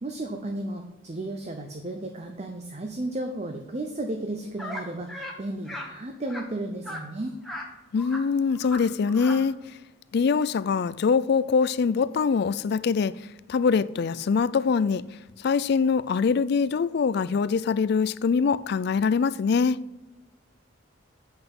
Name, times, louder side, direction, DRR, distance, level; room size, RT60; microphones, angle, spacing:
voice 1, 0.0-7.4, right 1 dB, 30° right, 0.7 m, -34 dB
sound 1, 4.6-4.8 5.1-5.3 5.7-5.9 6.3-6.4 6.8-7.0 7.4-7.7 8.0-8.2 8.5-8.8 9.1-9.4, left 1 dB, ahead, 1.2 m, -37 dB
voice 2, 7.9-9.6 10.1-13.1 13.5-15.0 15.4-19.8, left 5 dB, 50° left, 0.3 m, -23 dB
7.9 x 5.7 x 5.4 m
head